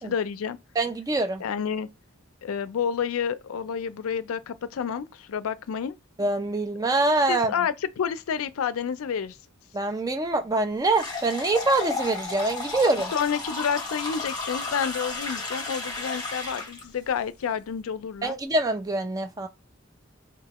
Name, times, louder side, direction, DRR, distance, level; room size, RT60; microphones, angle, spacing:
voice 1, 0.0-0.6 1.4-1.9 2.4-5.9 7.3-9.4 13.1-18.4, left 7 dB, 90° left, 0.4 m, -29 dB
voice 2, 0.8-1.4 6.2-7.5 9.7-13.1 18.2-19.5, right 2 dB, 15° right, 0.4 m, -25 dB
sound 1, 10.9-16.8, left 3 dB, 20° left, 1.1 m, -33 dB
3.1 x 2.2 x 2.9 m
head